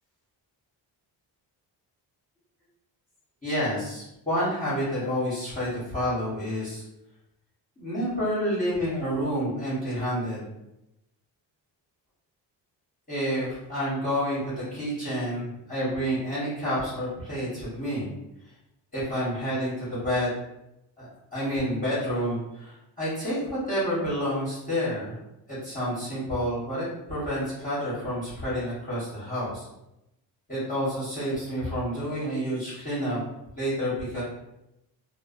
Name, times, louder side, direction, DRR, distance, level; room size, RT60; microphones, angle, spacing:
voice 1, 3.4-6.8 7.8-10.4 13.1-18.1 18.9-20.3 21.0-25.2 25.5-29.6 30.5-33.2 33.6-34.2, equal, 20° left, -10 dB, 1.1 m, -29 dB
2.5 x 2.2 x 2.4 m, 0.88 s
cardioid pair, 120°, 42 cm